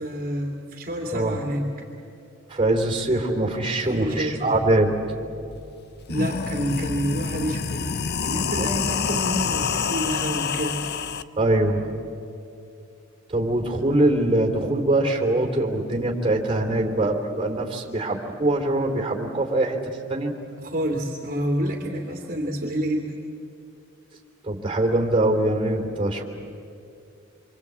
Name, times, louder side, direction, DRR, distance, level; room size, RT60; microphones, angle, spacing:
voice 1, 0.0-1.7 3.8-4.6 6.1-7.9 8.2-11.0 20.6-23.1, equal, 40° right, 0 dB, 2.6 m, -28 dB
voice 2, 2.5-4.9 8.6-8.7 11.4-11.9 13.3-19.8 20.1-20.3 24.5-26.2, right 1 dB, 25° right, 0 dB, 3.3 m, -23 dB
sound 1, 5.5-5.6 6.0-11.2, left 6 dB, 50° left, 0.7 m, -27 dB
26.5 x 26.0 x 8.3 m, 2.6 s
head